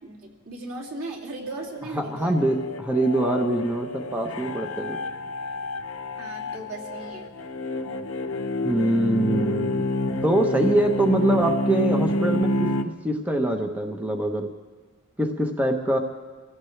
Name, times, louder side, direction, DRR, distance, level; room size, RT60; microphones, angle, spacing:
voice 1, 0.0-2.4 6.2-7.3, right 2 dB, 85° right, -2 dB, 2.7 m, -37 dB
sound 1, 1.5-12.8, left 1 dB, 70° left, 0.8 m, -28 dB
voice 2, 1.9-5.0 8.6-9.9 10.2-14.5 15.2-16.0, right 1 dB, 5° right, 3 dB, 1.0 m, -24 dB
25.0 x 16.0 x 3.3 m, 1.4 s
head